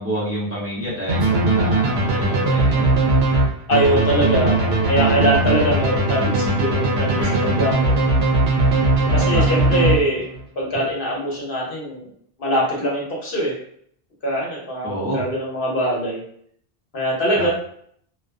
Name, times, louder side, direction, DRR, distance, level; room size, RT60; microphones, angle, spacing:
voice 1, 0.0-2.9 4.2-4.4 7.1-7.5 9.1-9.4 14.8-15.3 17.3-17.5, right 1 dB, 20° right, -7 dB, 0.5 m, -28 dB
sound 1, 1.1-10.4, right 2 dB, 85° right, 0.8 m, -19 dB
voice 2, 3.7-7.9 9.1-10.3 10.6-12.1 12.4-13.6 14.2-16.2 16.9-17.5, equal, 60° left, -4 dB, 1.0 m, -22 dB
2.4 x 2.3 x 2.2 m, 0.64 s
omnidirectional pair, 1.0 m